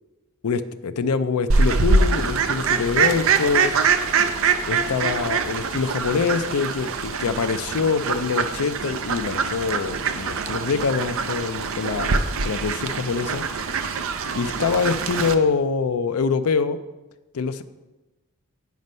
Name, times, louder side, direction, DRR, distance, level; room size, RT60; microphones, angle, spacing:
voice 1, 0.4-3.7 4.7-13.4 14.3-16.8 17.3-17.6, left 5 dB, 80° left, 11 dB, 0.5 m, -24 dB
Fowl, 1.5-15.3, right 4 dB, 65° right, 0.6 m, -24 dB
9.3 x 5.2 x 5.4 m, 1.1 s
head